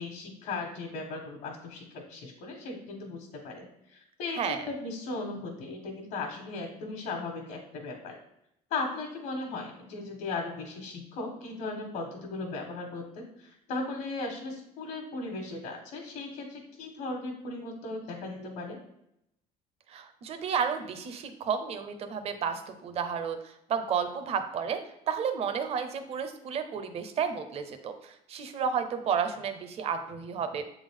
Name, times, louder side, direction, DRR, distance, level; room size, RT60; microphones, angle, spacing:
voice 1, 0.0-8.2 8.7-18.8, left 3 dB, 70° left, 0 dB, 1.2 m, -37 dB
voice 2, 19.9-24.8 25.1-30.6, right 7 dB, 45° right, 8 dB, 0.7 m, -32 dB
7.4 x 3.6 x 3.6 m, 0.79 s
cardioid pair, 150°, 15 cm